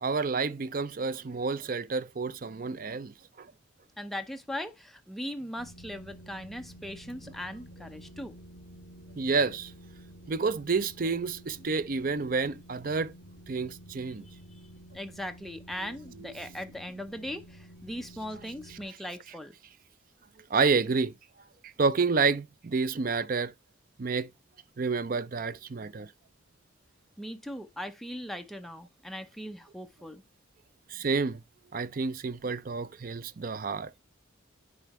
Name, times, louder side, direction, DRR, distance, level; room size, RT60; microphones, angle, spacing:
voice 1, 0.0-3.5 9.2-9.7 10.3-13.1 13.5-14.2 16.2-16.3 20.5-21.1 21.8-23.5 24.0-24.3 24.8-26.1 30.9-31.4 31.7-33.9, right 4 dB, 45° right, 0.5 m, -29 dB
voice 2, 4.0-8.3 14.9-19.5 27.2-30.2, equal, ahead, 0.7 m, -39 dB
sound 1, 5.6-18.9, right 1 dB, 55° left, 3.0 m, -51 dB
10.0 x 3.9 x 3.1 m
head